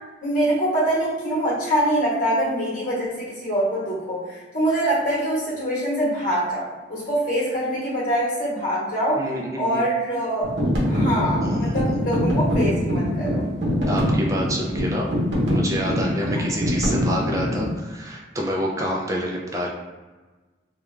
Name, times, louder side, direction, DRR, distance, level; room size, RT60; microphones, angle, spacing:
voice 1, 0.2-9.2 9.6-10.5 10.8-13.4, right 1 dB, 45° left, -7 dB, 1.0 m, -24 dB
voice 2, 9.2-9.8 11.4-11.8 13.9-15.1 15.5-19.7, equal, 15° right, -2 dB, 0.3 m, -28 dB
sound 1, 10.4-17.7, equal, 80° right, 0.8 m, -23 dB
2.2 x 2.2 x 3.1 m, 1.2 s
head